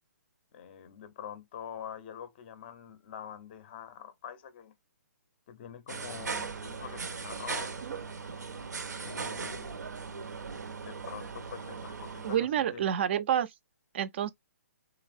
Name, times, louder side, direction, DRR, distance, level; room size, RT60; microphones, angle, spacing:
voice 1, 0.5-4.7 5.5-7.9 9.0-9.8 10.8-12.9, left 8 dB, 35° left, 0.5 m, -45 dB
sound 1, 5.9-12.4, right 5 dB, 85° right, 0.6 m, -38 dB
voice 2, 12.2-13.5 13.9-14.3, right 10 dB, 40° right, 0.4 m, -28 dB
3.3 x 2.0 x 2.4 m
hypercardioid pair, 150°, 9 cm